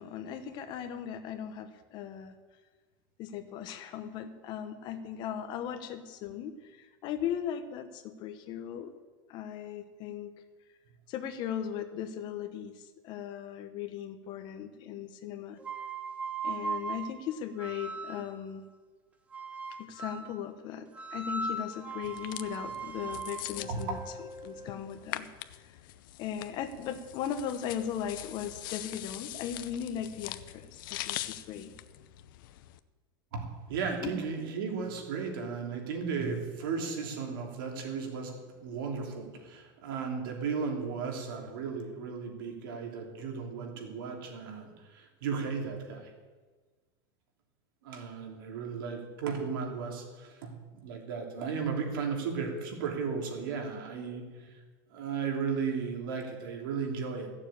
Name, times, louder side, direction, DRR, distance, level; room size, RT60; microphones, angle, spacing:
voice 1, 0.0-2.3 3.2-8.9 9.3-10.3 11.1-15.6 16.4-18.6 19.8-25.3 25.6-25.8 26.2-31.7 34.0-34.1, left 9 dB, 40° left, 9 dB, 1.1 m, -38 dB
sound 1, 15.6-18.4 19.3-20.3 20.9-24.9, right 3 dB, 10° right, 1.0 m, -39 dB
sound 2, 22.0-32.8, left 14 dB, 75° left, 0.7 m, -43 dB
voice 2, 33.3-46.1 47.8-54.6 54.9-57.3, right 5 dB, 80° right, 2 dB, 3.0 m, -35 dB
14.5 x 7.2 x 8.6 m, 1.4 s
supercardioid pair, 160°, 11 cm